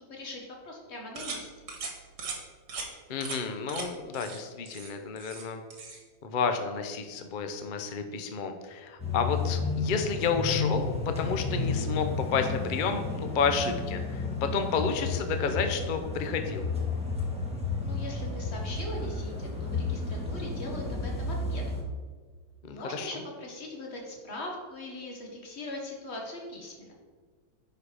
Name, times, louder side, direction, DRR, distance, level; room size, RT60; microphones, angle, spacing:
voice 1, 0.1-1.7 17.8-21.6 22.6-26.9, left 1 dB, 35° left, 0 dB, 1.7 m, -40 dB
sound 1, 1.2-1.4 1.7-1.9 2.2-2.4 2.7-2.9 3.2-3.4 3.7-3.9 4.1-4.4 4.7-5.5 5.7-6.0, right 4 dB, 65° right, 2.0 m, -38 dB
voice 2, 3.1-5.6 6.2-16.7 22.7-23.1, left 5 dB, 65° left, 6 dB, 0.4 m, -31 dB
sound 2, 9.0-21.8, left 3 dB, 5° right, 1.3 m, -32 dB
10.0 x 4.7 x 4.9 m, 1.5 s
omnidirectional pair, 2.0 m